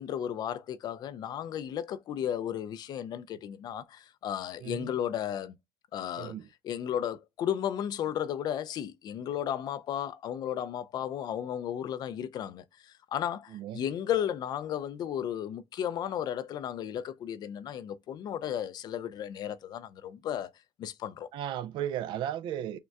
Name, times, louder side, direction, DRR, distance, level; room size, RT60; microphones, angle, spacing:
voice 1, 0.0-5.5 5.9-6.4 6.6-20.5 20.8-21.3, left 10 dB, 45° left, 0.4 m, -34 dB
voice 2, 4.6-4.9 6.2-6.5 13.5-13.8 21.3-22.8, right 10 dB, 55° right, 0.4 m, -35 dB
6.3 x 2.2 x 2.3 m
supercardioid pair, 100°, 10 cm